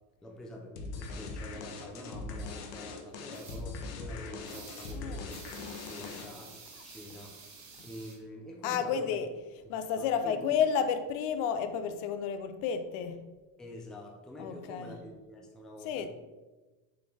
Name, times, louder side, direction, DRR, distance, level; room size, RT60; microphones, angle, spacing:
voice 1, 0.2-5.5 5.8-7.4 7.8-9.2 10.0-10.5 13.6-16.1, left 1 dB, ahead, 0 dB, 0.4 m, -46 dB
sound 1, 0.8-6.5, left 3 dB, 90° left, 1.2 m, -41 dB
sound 2, 3.3-3.6 4.4-5.0 5.3-8.2, right 4 dB, 35° right, 1.7 m, -50 dB
voice 2, 4.9-5.3 8.6-9.3 9.7-13.2 14.4-15.0 15.8-16.1, left 7 dB, 65° left, 9 dB, 0.7 m, -31 dB
6.7 x 4.3 x 3.3 m, 1.2 s
cardioid pair, 150°, 46 cm